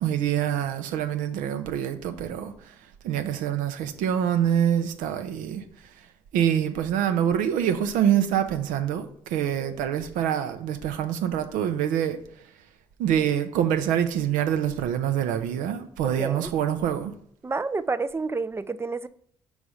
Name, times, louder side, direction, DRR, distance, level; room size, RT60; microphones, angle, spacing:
voice 1, 0.0-2.8 3.0-5.6 6.3-12.2 13.0-17.1, right 9 dB, 75° right, 0.5 m, -25 dB
voice 2, 16.2-16.5 17.4-19.1, right 3 dB, 20° right, 0.4 m, -29 dB
4.8 x 4.1 x 4.9 m
hypercardioid pair, 50°, 14 cm